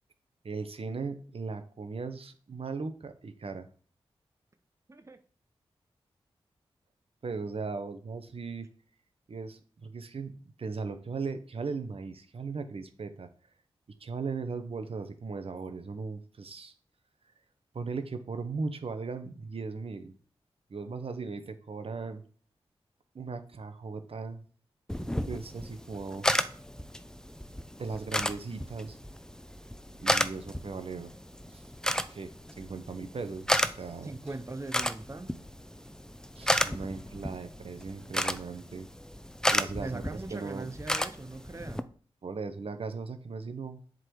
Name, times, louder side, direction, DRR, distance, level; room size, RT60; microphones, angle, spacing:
voice 1, 0.4-3.7 7.2-8.7 9.3-10.3 10.6-13.3 14.0-16.7 17.7-20.1 20.7-22.2 23.1-24.4 25.3-26.3 27.8-29.0 30.0-31.1 31.5-31.6 32.1-33.5 33.8-34.2 36.4-38.9 39.5-40.7 42.2-43.8, right 4 dB, 65° right, 8 dB, 1.1 m, -38 dB
sound 1, 24.9-41.8, equal, 5° left, 0.7 m, -33 dB
voice 2, 34.0-35.4 39.7-41.9, right 2 dB, 30° right, 7 dB, 0.8 m, -40 dB
7.5 x 4.0 x 4.8 m, 0.43 s
cardioid pair, 45°, 11 cm